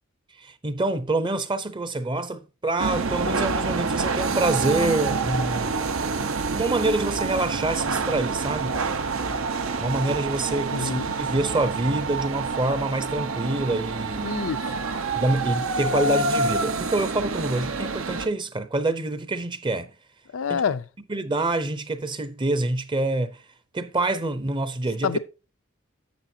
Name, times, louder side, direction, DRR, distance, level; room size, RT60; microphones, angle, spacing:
voice 1, 0.4-5.8 6.5-8.8 9.8-14.4 15.1-19.9 20.5-20.6 21.1-23.4 23.7-25.2, right 2 dB, 25° right, 0.7 m, -26 dB
sound 1, 2.8-18.3, right 4 dB, 80° right, 1.0 m, -27 dB
voice 2, 10.7-11.1 14.2-14.7 20.3-20.8 25.0-25.2, left 6 dB, 70° left, 0.5 m, -27 dB
10.5 x 7.5 x 2.7 m
head